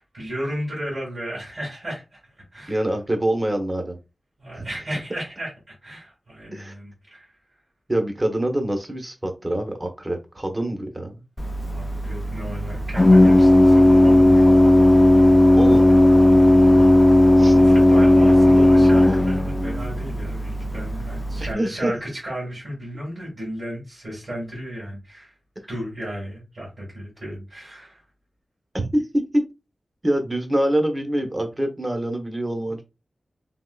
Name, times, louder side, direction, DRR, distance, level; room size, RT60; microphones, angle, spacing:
voice 1, 0.0-2.2 2.5-2.8 4.4-7.4 11.7-14.4 16.4-16.9 17.4-25.4 25.7-28.0, equal, 55° right, -5 dB, 1.9 m, -34 dB
voice 2, 2.7-4.0 4.5-4.7 6.5-6.7 7.9-11.2 15.5-15.9 17.4-17.6 21.5-21.9 28.7-29.4 30.0-32.8, right 1 dB, 25° right, 4 dB, 0.9 m, -25 dB
Organ, 11.4-21.5, left 1 dB, 20° left, 0.3 m, -15 dB
3.5 x 3.0 x 2.3 m, 0.27 s
wide cardioid pair, 90°, 0 cm